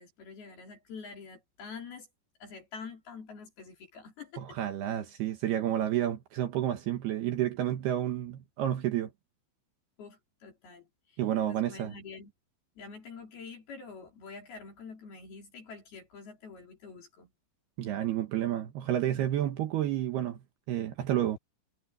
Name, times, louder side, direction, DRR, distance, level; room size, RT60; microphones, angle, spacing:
voice 1, 0.0-2.1 2.4-4.6 10.0-11.2 11.5-12.3 12.8-17.3, left 5 dB, 55° left, 5.6 m, -46 dB
voice 2, 4.4-9.1 11.2-11.9 17.8-20.4 20.7-21.4, right 12 dB, 65° right, 2.8 m, -30 dB
omnidirectional pair, 5.6 m